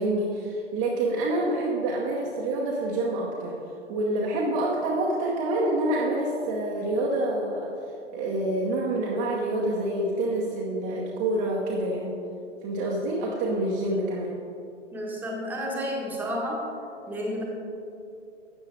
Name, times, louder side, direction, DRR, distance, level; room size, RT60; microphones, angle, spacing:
voice 1, 0.0-3.6 3.9-7.7 8.1-12.1 12.6-14.4, right 1 dB, 25° right, -4 dB, 0.9 m, -27 dB
voice 2, 14.9-16.6 17.1-17.4, equal, 5° right, -2 dB, 1.2 m, -31 dB
12.5 x 8.3 x 3.3 m, 2.6 s
figure-of-eight pair, 120°, 37 cm